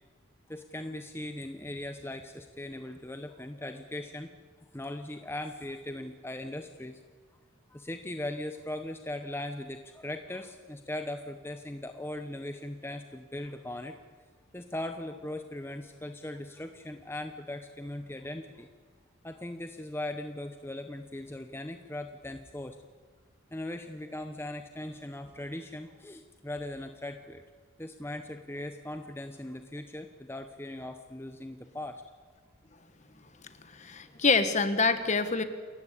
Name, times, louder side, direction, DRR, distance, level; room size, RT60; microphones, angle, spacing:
voice 1, 0.5-4.3 4.7-7.0 7.7-14.0 14.5-18.7 19.2-22.8 23.5-27.4 27.8-32.0, left 1 dB, 10° left, 7 dB, 0.9 m, -39 dB
voice 2, 33.4-35.4, left 4 dB, 35° left, 10 dB, 1.5 m, -26 dB
28.5 x 15.0 x 8.4 m, 1.5 s
head